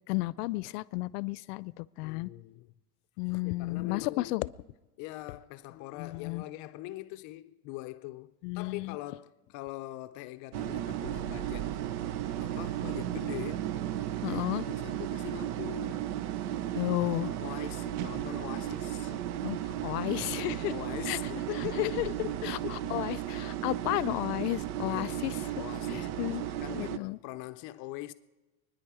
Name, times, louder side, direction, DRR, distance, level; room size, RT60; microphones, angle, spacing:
voice 1, 0.1-2.3 3.2-4.5 6.0-6.4 8.4-9.0 14.2-14.6 16.7-17.3 19.1-19.6 19.8-20.7 21.1-21.4 21.8-22.1 22.4-25.3 26.2-27.2, left 20 dB, 90° left, 0.6 m, -33 dB
voice 2, 2.0-2.7 3.4-4.5 5.0-11.7 12.4-13.7 14.0-16.1 16.9-19.1 20.7-22.9 24.8-28.1, left 17 dB, 45° left, 0.5 m, -42 dB
sound 1, 10.5-27.0, right 12 dB, 80° right, 0.8 m, -35 dB
25.0 x 10.5 x 4.8 m
supercardioid pair, 150°, 45 cm